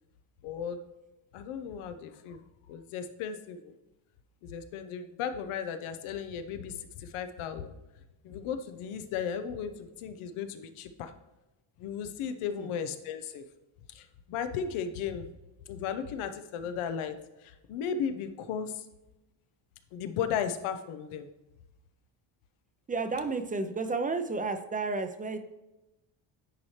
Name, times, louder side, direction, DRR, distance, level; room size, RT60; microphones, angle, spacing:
voice 1, 0.4-0.8 1.3-3.7 4.4-7.7 8.2-11.1 11.8-13.4 13.9-15.3 15.7-17.1 17.4-18.8 19.9-21.3, left 7 dB, 90° left, 9 dB, 0.8 m, -35 dB
voice 2, 22.9-25.4, right 3 dB, 20° right, 9 dB, 0.5 m, -32 dB
9.4 x 4.3 x 3.2 m, 1.0 s
cardioid pair, 120°, 49 cm